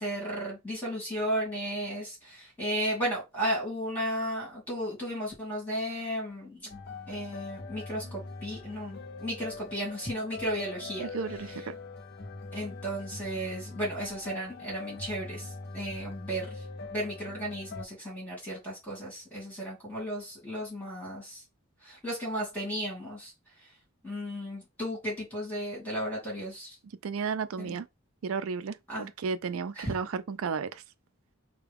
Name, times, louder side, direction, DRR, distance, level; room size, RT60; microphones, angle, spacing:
voice 1, 0.0-6.8 7.1-11.1 12.5-16.6 16.9-21.4 21.8-23.3 24.0-26.8 27.6-27.8 28.9-29.1 29.8-30.0, equal, 5° left, 2.2 m, -34 dB
sound 1, 6.7-17.8, left 3 dB, 45° left, 0.5 m, -42 dB
voice 2, 11.0-11.7 27.0-27.9 28.2-30.8, right 5 dB, 75° right, 0.4 m, -33 dB
4.5 x 2.2 x 3.4 m
head